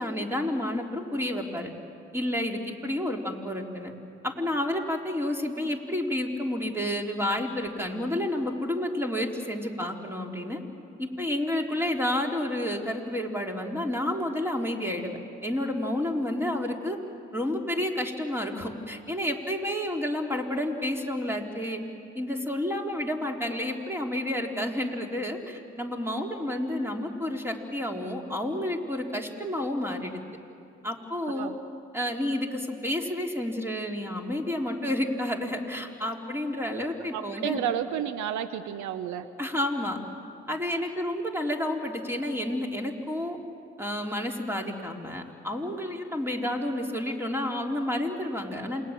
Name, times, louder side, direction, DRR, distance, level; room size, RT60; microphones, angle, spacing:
voice 1, 0.0-1.7 2.1-3.9 4.2-10.6 11.0-17.0 17.3-21.8 22.2-30.2 30.8-31.5 31.9-37.7 39.4-40.0 40.5-43.4 43.8-48.8, left 1 dB, 10° right, 1 dB, 3.7 m, -30 dB
voice 2, 37.1-39.3, right 9 dB, 70° right, 12 dB, 0.8 m, -31 dB
28.0 x 20.5 x 7.4 m, 2.7 s
hypercardioid pair, 45°, 30 cm